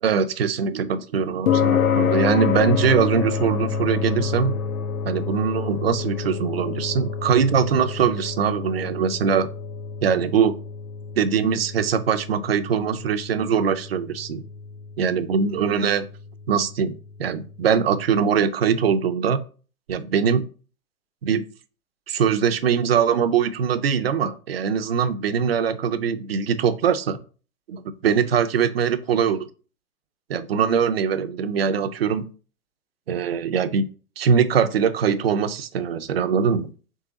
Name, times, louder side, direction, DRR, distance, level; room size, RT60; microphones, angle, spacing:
voice 1, 0.0-4.5 5.0-9.5 10.0-10.6 11.2-14.4 15.0-16.0 16.5-16.9 17.2-19.4 19.9-20.4 21.2-21.4 22.1-27.2 28.0-29.5 30.3-32.3 33.1-33.8 34.2-36.7, right 7 dB, 45° right, 11 dB, 0.5 m, -22 dB
sound 1, 1.5-18.0, left 6 dB, 70° left, 0.7 m, -28 dB
3.7 x 3.3 x 3.9 m, 0.38 s
hypercardioid pair, 155°, 43 cm